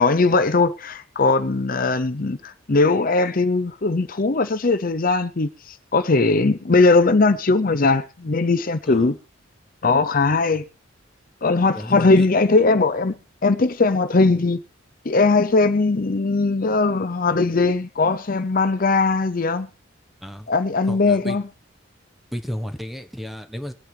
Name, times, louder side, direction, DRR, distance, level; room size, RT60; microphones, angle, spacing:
voice 1, 0.0-9.2 9.8-10.6 11.4-13.2 13.4-14.6 15.0-19.7 20.5-21.4, left 3 dB, 45° left, 0.7 m, -19 dB
voice 2, 8.9-9.2 11.7-12.3 20.2-20.5 20.9-21.4 22.3-23.7, equal, ahead, 1.1 m, -33 dB
23.0 x 9.1 x 3.4 m
head